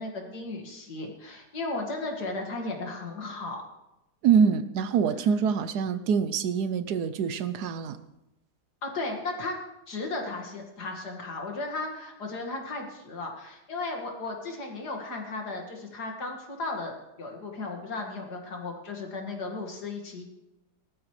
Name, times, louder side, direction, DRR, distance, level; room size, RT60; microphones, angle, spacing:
voice 1, 0.0-3.6 8.8-9.6 9.9-20.2, left 3 dB, 70° left, 2 dB, 2.6 m, -35 dB
voice 2, 4.2-8.0, right 6 dB, 75° right, 12 dB, 1.2 m, -25 dB
18.5 x 13.0 x 3.3 m, 0.90 s
omnidirectional pair, 1.8 m